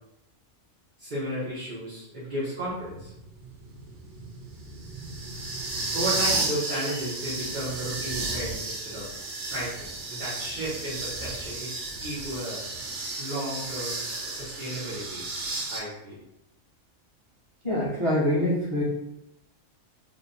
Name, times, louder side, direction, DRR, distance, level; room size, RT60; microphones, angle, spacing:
voice 1, 1.0-3.1 5.9-9.1 9.5-12.6 13.2-15.2 15.7-16.2, right 1 dB, 45° right, -9 dB, 1.1 m, -34 dB
sound 1, 2.7-15.8, right 3 dB, 70° right, 1.0 m, -33 dB
voice 2, 17.6-18.8, left 1 dB, 25° right, -8 dB, 1.4 m, -25 dB
3.4 x 2.2 x 3.9 m, 0.85 s
omnidirectional pair, 1.3 m